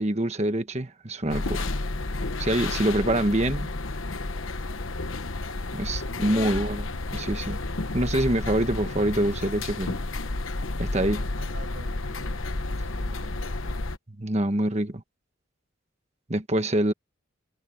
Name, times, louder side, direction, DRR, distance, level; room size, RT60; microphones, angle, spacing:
voice 1, 0.0-1.7 2.4-3.7 5.7-6.8 7.1-7.6 7.9-10.0 10.8-11.2 14.2-15.0 16.3-16.9, right 1 dB, 30° right, 1.4 m, -25 dB
sound 1, 1.3-14.0, left 2 dB, 70° left, 1.1 m, -31 dB
voice 2, 6.1-6.7 11.0-12.5 12.8-13.8, right 1 dB, 55° right, 7.1 m, -47 dB
head